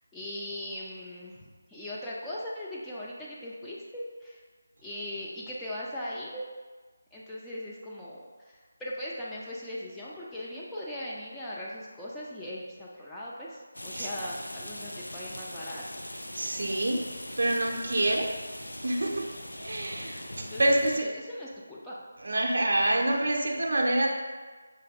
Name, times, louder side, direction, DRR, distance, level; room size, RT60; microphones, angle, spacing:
voice 1, 0.1-4.4 4.8-6.4 7.1-16.0 20.3-22.0, left 1 dB, 5° left, -7 dB, 0.3 m, -39 dB
Rain, 13.7-21.0, left 1 dB, 75° left, 0.4 m, -41 dB
voice 2, 16.3-17.0 17.4-18.3 18.8-19.2 19.6-20.2 20.6-21.1 22.2-24.1, right 1 dB, 60° right, -1 dB, 0.5 m, -26 dB
5.0 x 2.2 x 2.6 m, 1.4 s
figure-of-eight pair, 160°, 0 cm